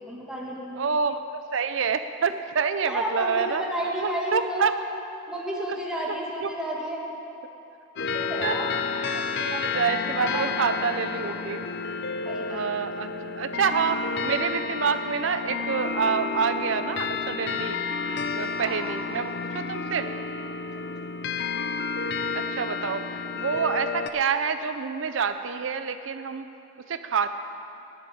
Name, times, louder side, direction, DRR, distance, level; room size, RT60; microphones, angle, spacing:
voice 1, 0.0-0.8 2.8-4.7 5.3-7.1 8.3-8.7 9.5-9.6 10.2-10.7 10.9-11.4 12.2-12.7 18.6-19.0 20.7-21.1, equal, 5° right, -4 dB, 1.3 m, -32 dB
voice 2, 0.8-3.6 4.0-4.7 6.4-6.5 8.4-8.6 8.9-11.7 12.5-13.1 13.4-17.8 18.3-20.1 22.3-26.5 26.9-27.3, right 6 dB, 65° right, 10 dB, 0.5 m, -27 dB
sound 1, 8.0-24.1, left 4 dB, 55° left, 0.5 m, -31 dB
10.5 x 7.0 x 8.9 m, 2.9 s
head